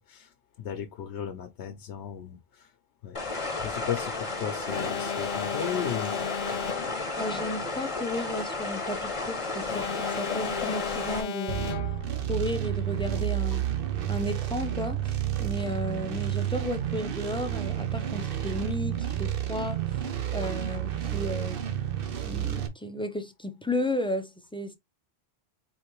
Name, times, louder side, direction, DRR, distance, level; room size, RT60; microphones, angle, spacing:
voice 1, 0.0-2.7 3.0-3.2 3.6-6.1 6.4-6.5 13.5-13.6 20.4-20.6, left 9 dB, 85° left, 1.0 m, -36 dB
sound 1, 3.1-11.2, left 3 dB, 30° left, 1.0 m, -33 dB
Alarm, 4.7-7.2 9.7-12.2, left 8 dB, 60° left, 0.6 m, -35 dB
voice 2, 7.2-11.7 12.3-13.7 14.1-19.8 20.3-21.6 22.2-24.8, left 1 dB, 5° left, 0.5 m, -33 dB
sound 2, 11.5-22.7, right 11 dB, 60° right, 0.9 m, -30 dB
4.5 x 3.4 x 3.1 m
omnidirectional pair, 1.1 m